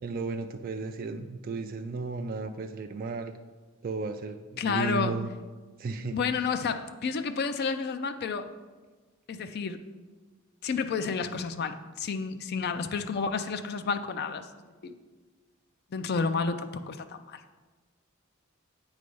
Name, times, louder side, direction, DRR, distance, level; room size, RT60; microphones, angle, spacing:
voice 1, 0.0-3.3 3.8-5.3 5.8-6.2, right 3 dB, 45° right, 6 dB, 0.3 m, -34 dB
voice 2, 4.6-5.2 6.1-8.5 9.3-9.8 10.6-14.5 14.8-14.9 15.9-17.4, left 5 dB, 50° left, 9 dB, 0.4 m, -30 dB
8.4 x 3.2 x 5.3 m, 1.3 s
head